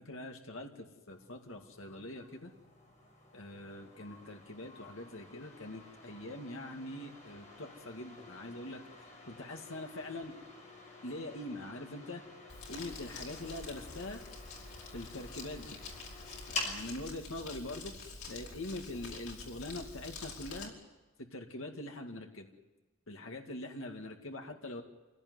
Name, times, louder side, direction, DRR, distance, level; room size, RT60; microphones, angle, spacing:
voice 1, 0.0-2.5 3.3-10.3 11.0-12.2 12.7-14.2 14.9-15.8 16.5-20.7 21.3-22.5 23.1-24.8, left 1 dB, 65° left, 3 dB, 2.1 m, -43 dB
sound 1, 1.1-16.8, left 2 dB, 35° left, 6.1 m, -48 dB
Crumpling crinkling, 12.5-20.7, left 3 dB, 85° left, 5.0 m, -47 dB
27.0 x 17.0 x 9.6 m, 1.2 s
head